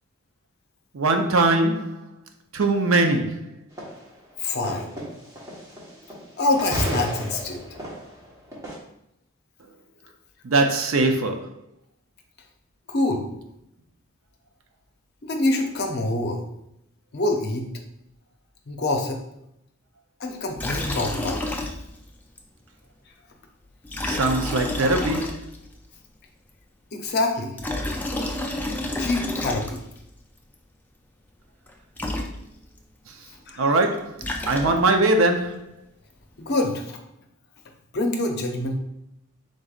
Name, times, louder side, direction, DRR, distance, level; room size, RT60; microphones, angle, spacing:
voice 1, 0.9-2.0 2.5-3.6 10.4-11.5 24.0-25.5 33.6-35.7, right 2 dB, 70° right, 0.6 m, -21 dB
sound 1, 3.8-4.1 4.6-6.3 6.5-8.8, equal, 15° right, 1.2 m, -32 dB
voice 2, 4.4-4.9 6.4-7.6 12.9-13.3 15.2-16.4 17.1-17.7 18.7-19.2 20.2-21.5 26.9-27.6 29.0-29.8 33.5-33.7 34.4-34.5 36.4-37.0 37.9-38.8, left 2 dB, 50° left, 0.6 m, -25 dB
Liquid, 20.6-22.1 22.4-22.5 23.8-25.8 27.4-30.0 31.7-31.8 32.0-32.8 33.9-35.1, left 1 dB, 10° left, 0.4 m, -30 dB
5.0 x 3.9 x 2.4 m
head